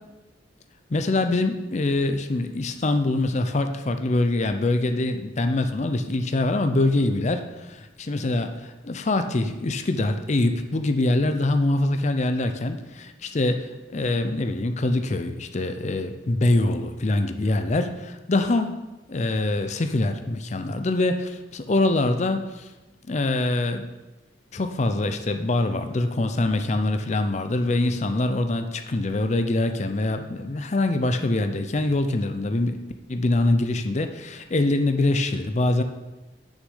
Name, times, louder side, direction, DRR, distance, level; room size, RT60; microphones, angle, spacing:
voice 1, 0.9-18.8 19.1-22.7 23.1-23.9 24.5-32.8 33.1-35.8, left 2 dB, 35° left, 7 dB, 0.5 m, -24 dB
6.5 x 6.3 x 5.5 m, 1.1 s
head